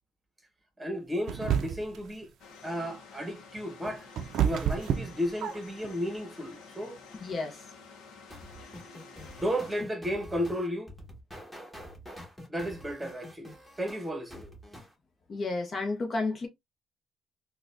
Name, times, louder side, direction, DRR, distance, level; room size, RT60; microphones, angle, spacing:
voice 1, 0.8-2.3 2.6-4.1 4.4-7.0 9.4-10.9 12.5-13.5 13.8-14.5, equal, 15° right, 1.0 m, -33 dB
sound 1, 1.3-2.0 3.6-5.9, right 9 dB, 75° right, 0.4 m, -29 dB
sound 2, 2.4-9.8, left 4 dB, 85° left, 0.7 m, -50 dB
voice 2, 7.2-7.7 15.3-16.5, left 3 dB, 45° left, 0.7 m, -32 dB
sound 3, 8.3-14.9, equal, 5° left, 1.2 m, -47 dB
3.8 x 2.3 x 2.5 m
cardioid pair, 90°, 0 cm